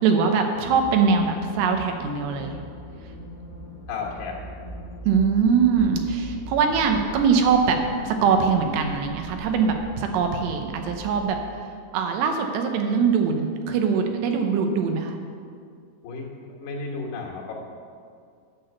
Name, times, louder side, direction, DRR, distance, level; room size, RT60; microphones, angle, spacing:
voice 1, 0.0-2.5 5.1-7.8 8.0-11.4 11.9-15.2, right 5 dB, 75° right, 5 dB, 2.8 m, -22 dB
sound 1, 0.5-11.4, right 1 dB, 10° left, 0.7 m, -39 dB
voice 2, 3.9-4.4 16.0-17.5, left 4 dB, 70° left, -2 dB, 3.5 m, -34 dB
10.5 x 6.1 x 8.0 m, 2.2 s
omnidirectional pair, 5.2 m